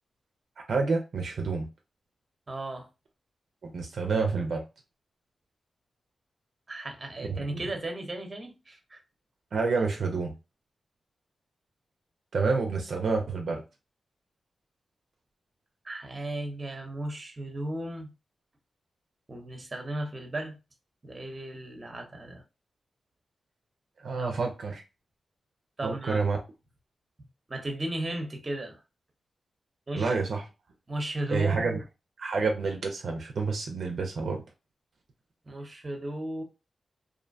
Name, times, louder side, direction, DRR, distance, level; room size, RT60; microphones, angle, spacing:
voice 1, 0.7-1.7 3.6-4.6 7.3-7.6 9.5-10.3 12.3-13.6 24.0-24.8 25.8-26.4 29.9-30.4 31.3-31.8 32.2-34.4, right 4 dB, 75° right, 0.5 m, -28 dB
voice 2, 2.5-2.9 6.7-9.0 15.8-18.1 19.3-20.6 21.0-22.4 24.2-24.3 25.8-26.2 27.5-28.8 29.9-30.1 30.9-31.8 35.5-36.4, right 1 dB, 35° right, 0.8 m, -35 dB
2.6 x 2.1 x 2.5 m
cardioid pair, 65°, 0 cm